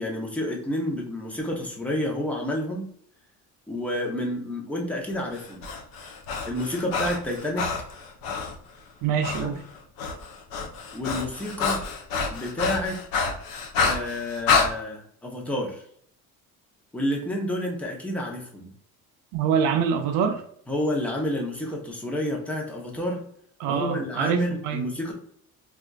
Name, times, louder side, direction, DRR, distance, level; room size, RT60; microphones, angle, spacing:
voice 1, 0.0-2.9 3.7-5.6 6.4-7.7 9.4-9.5 10.9-11.8 12.3-13.0 13.8-15.8 16.9-18.7 20.7-23.2 23.7-25.1, left 1 dB, 5° left, 0.7 m, -29 dB
Breathing, 5.3-8.6 9.2-9.5 9.7-14.7, left 5 dB, 85° left, 0.7 m, -28 dB
voice 2, 9.0-9.6 19.3-20.4 23.6-24.8, right 7 dB, 80° right, 0.6 m, -25 dB
4.2 x 2.4 x 2.3 m
cardioid pair, 145°, 33 cm